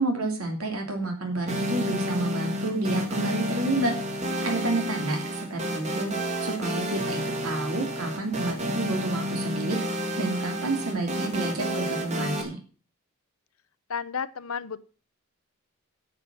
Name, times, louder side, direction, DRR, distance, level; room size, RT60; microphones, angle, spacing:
voice 1, 0.0-5.2 5.5-6.1 6.4-9.8 10.2-12.6, right 2 dB, 85° right, 2 dB, 3.0 m, -29 dB
sound 1, 1.5-12.4, equal, 35° right, 2.4 m, -30 dB
voice 2, 13.9-14.8, left 6 dB, 85° left, 14 dB, 0.8 m, -32 dB
9.9 x 7.8 x 7.6 m, 0.40 s
head